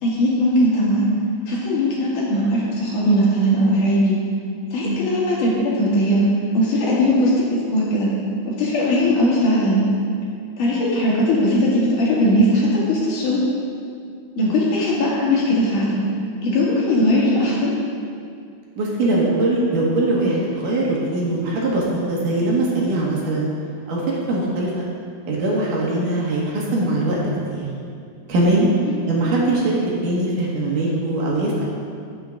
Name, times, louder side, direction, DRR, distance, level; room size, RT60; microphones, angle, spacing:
voice 1, 0.0-1.1 1.5-4.2 4.7-6.2 6.5-8.1 8.5-9.8 10.6-13.4 14.4-16.0 16.4-17.7 29.0-29.1, equal, 60° left, -6 dB, 3.5 m, -19 dB
voice 2, 18.8-23.5 23.9-24.0 24.3-24.8 25.3-27.2 27.5-27.7 28.3-28.7 29.1-31.6, right 2 dB, 65° right, -4 dB, 3.2 m, -21 dB
15.5 x 7.9 x 3.8 m, 2.3 s
omnidirectional pair, 4.2 m